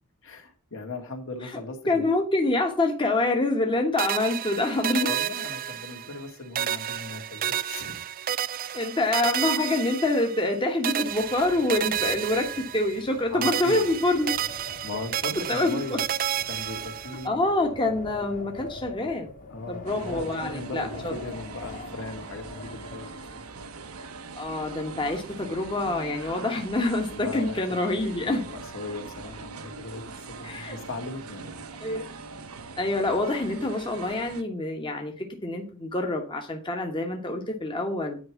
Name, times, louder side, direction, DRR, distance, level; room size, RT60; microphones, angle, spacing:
voice 1, 0.2-2.1 5.0-8.0 8.6-8.8 9.2-9.4 9.6-9.7 13.3-13.9 14.8-16.0 16.5-17.5 19.5-23.2 27.1-27.6 28.2-30.0 30.4-31.7, left 2 dB, 65° left, 4 dB, 2.1 m, -38 dB
voice 2, 1.9-5.1 8.7-14.3 15.5-16.0 17.2-19.3 19.7-21.1 24.4-28.4 30.4-30.8 31.8-32.0 32.8-38.2, left 2 dB, 20° left, 3 dB, 1.3 m, -26 dB
sound 1, 4.0-6.3 6.5-10.5 10.8-13.1 13.4-17.3, right 11 dB, 40° right, 0.4 m, -31 dB
Wind, 11.0-23.6, left 3 dB, 40° left, 1.7 m, -44 dB
sound 2, 19.9-34.4, right 4 dB, 80° right, 1.1 m, -42 dB
9.7 x 4.7 x 7.0 m, 0.39 s
head